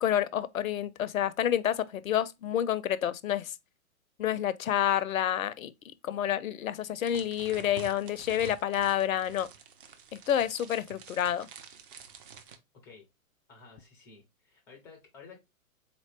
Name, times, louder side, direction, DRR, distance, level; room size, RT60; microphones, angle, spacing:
voice 1, 0.0-3.5 4.2-5.7 6.0-9.5 10.3-11.5, left 10 dB, 70° left, 0.6 m, -29 dB
sound 1, 7.0-12.6, right 7 dB, 40° right, 0.7 m, -49 dB
voice 2, 13.5-15.4, left 5 dB, 5° left, 0.4 m, -53 dB
4.0 x 2.9 x 3.0 m
figure-of-eight pair, 110°, 43 cm